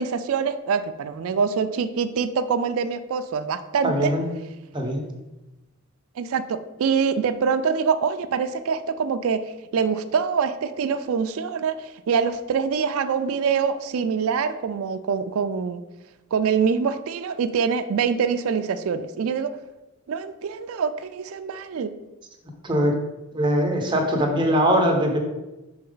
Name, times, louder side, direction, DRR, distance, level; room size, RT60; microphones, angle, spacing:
voice 1, 0.0-4.1 6.2-9.4 9.7-15.8 16.3-19.5 20.1-21.9, right 6 dB, 70° right, 9 dB, 0.4 m, -24 dB
voice 2, 3.8-4.3 4.7-5.0 22.6-23.0 23.3-25.2, equal, 20° right, 1 dB, 0.8 m, -21 dB
6.0 x 4.3 x 3.8 m, 1.0 s
head